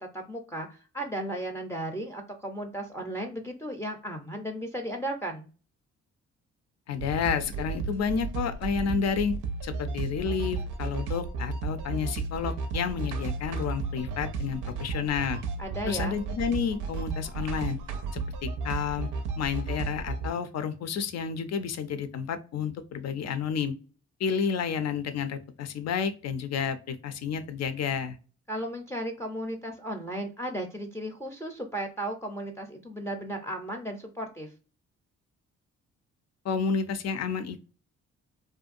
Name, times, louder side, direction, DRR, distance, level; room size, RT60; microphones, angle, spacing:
voice 1, 0.1-5.5 15.6-16.2 28.5-34.5, right 1 dB, 10° left, 2 dB, 0.5 m, -35 dB
voice 2, 6.9-9.3 9.6-15.4 15.9-17.8 18.1-19.1 19.4-23.7 24.2-28.2 36.4-37.6, left 6 dB, 60° left, 11 dB, 0.5 m, -30 dB
sound 1, 7.0-20.3, right 4 dB, 85° right, 0.5 m, -33 dB
2.6 x 2.2 x 2.4 m, 0.36 s
supercardioid pair, 60°, 30 cm